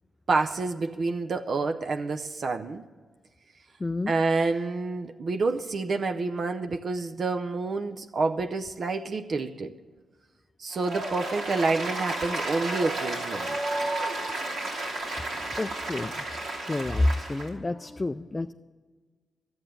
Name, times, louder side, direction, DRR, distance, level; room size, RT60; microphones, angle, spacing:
voice 1, 0.3-2.8 4.1-9.8 10.6-13.6, right 3 dB, 60° right, 0.6 m, -28 dB
voice 2, 3.8-4.1 15.2-16.1 16.7-18.5, left 2 dB, 25° left, 0.4 m, -29 dB
Applause, 10.7-17.5, right 2 dB, 90° right, 2.9 m, -32 dB
12.0 x 7.9 x 8.8 m
cardioid pair, 65°, 0 cm